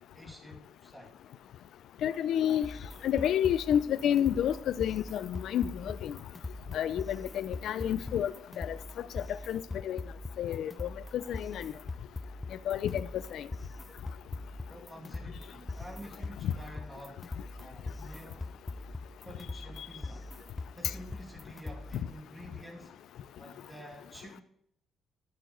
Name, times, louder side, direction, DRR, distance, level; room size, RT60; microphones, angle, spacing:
voice 1, 0.1-1.1 14.7-17.2 17.6-18.6 19.2-20.3 20.7-23.0 23.4-24.4, equal, 5° right, 2.4 m, -49 dB
voice 2, 2.0-2.7 3.0-6.2 6.7-8.8 9.1-10.0 10.4-11.7 12.7-13.5, left 10 dB, 75° left, 0.6 m, -30 dB
sound 1, 2.6-22.2, left 2 dB, 20° left, 0.7 m, -42 dB
14.5 x 6.7 x 4.0 m
cardioid pair, 90°, 0 cm